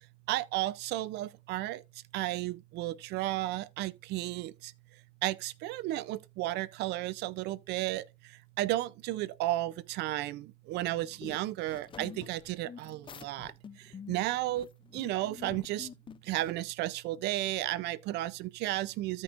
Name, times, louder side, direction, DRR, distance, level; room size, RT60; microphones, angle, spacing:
voice 1, 0.3-1.8 2.1-4.7 5.2-15.9 16.2-19.2, right 16 dB, 85° right, 0.5 m, -33 dB
sound 1, 10.8-16.5, left 7 dB, 30° left, 0.5 m, -48 dB
15.0 x 5.2 x 2.5 m
cardioid pair, 110°, 17 cm